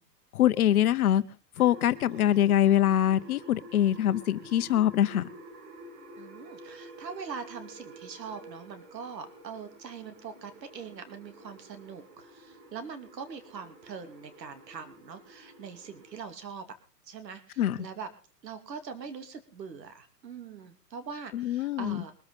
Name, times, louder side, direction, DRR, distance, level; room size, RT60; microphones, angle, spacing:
voice 1, 0.3-1.2 1.6-5.3 17.6-17.8 21.3-22.0, left 11 dB, 60° left, 13 dB, 1.2 m, -24 dB
sound 1, 1.6-16.2, right 1 dB, 45° right, 6.0 m, -49 dB
voice 2, 6.2-16.6 17.1-18.1 18.4-22.1, right 6 dB, 80° right, 8 dB, 2.7 m, -42 dB
23.0 x 8.0 x 5.3 m, 0.37 s
hypercardioid pair, 140°, 49 cm